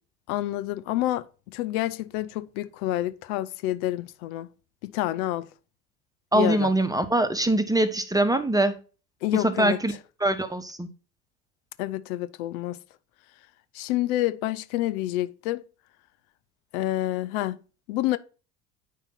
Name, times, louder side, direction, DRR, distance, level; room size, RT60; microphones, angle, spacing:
voice 1, 0.3-4.5 4.8-5.5 6.3-6.7 9.2-9.8 11.8-12.8 13.7-15.6 16.7-17.6 17.9-18.2, left 15 dB, 60° left, 0.8 m, -28 dB
voice 2, 6.3-8.8 9.3-9.9 10.2-10.9, right 1 dB, 5° right, 1.2 m, -23 dB
9.3 x 5.6 x 4.1 m
hypercardioid pair, 70°, 49 cm